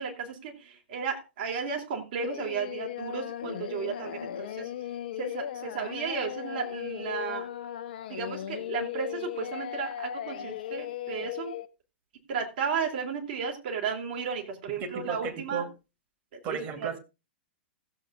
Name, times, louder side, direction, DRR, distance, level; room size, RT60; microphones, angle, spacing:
voice 1, 0.0-4.7 5.1-7.5 8.1-11.6 12.3-15.7 16.3-17.0, right 6 dB, 50° right, 2 dB, 3.3 m, -34 dB
Singing, 2.2-11.7, left 11 dB, 55° left, 0.8 m, -37 dB
voice 2, 14.8-15.7 16.4-17.0, right 6 dB, 35° right, 5 dB, 2.6 m, -34 dB
16.0 x 7.9 x 3.7 m, 0.28 s
figure-of-eight pair, 100°, 6 cm